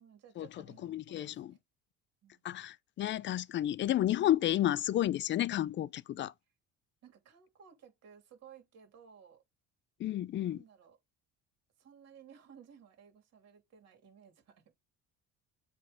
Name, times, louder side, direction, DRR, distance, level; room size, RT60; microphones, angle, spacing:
voice 1, 0.0-1.6 2.2-2.6 7.0-9.4 10.4-11.0 11.8-14.7, right 8 dB, 55° right, 3.0 m, -58 dB
voice 2, 0.8-1.5 2.4-6.3 10.0-10.6, left 12 dB, 35° left, 0.4 m, -31 dB
7.7 x 3.3 x 3.8 m
cardioid pair, 115°, 32 cm